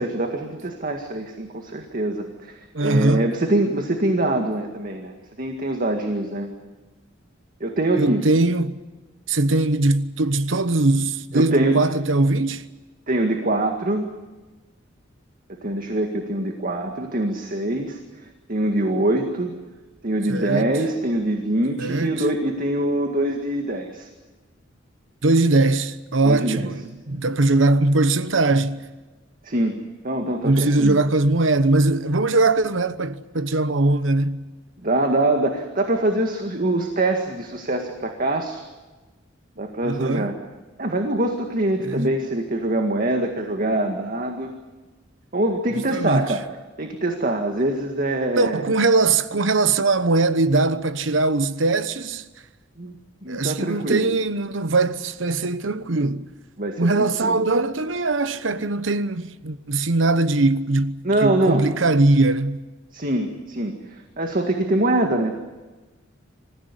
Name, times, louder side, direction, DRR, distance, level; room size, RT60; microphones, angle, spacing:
voice 1, 0.0-6.5 7.6-8.2 11.3-11.8 13.1-14.1 15.6-18.0 18.5-19.6 20.0-24.1 26.2-26.7 29.4-29.8 30.0-31.0 34.8-38.6 39.6-40.3 40.8-44.5 45.3-46.4 46.8-48.6 52.8-53.0 53.2-54.0 56.6-57.4 61.0-61.7 62.9-65.4, right 1 dB, 45° right, 1.9 m, -24 dB
voice 2, 2.7-3.3 8.0-8.8 9.3-12.6 20.3-20.7 21.8-22.2 25.2-28.8 30.4-34.4 39.8-40.3 41.8-42.1 45.9-46.3 48.4-52.2 53.3-56.3 56.8-62.6, right 2 dB, 80° right, 1.0 m, -21 dB
26.0 x 15.5 x 9.8 m
head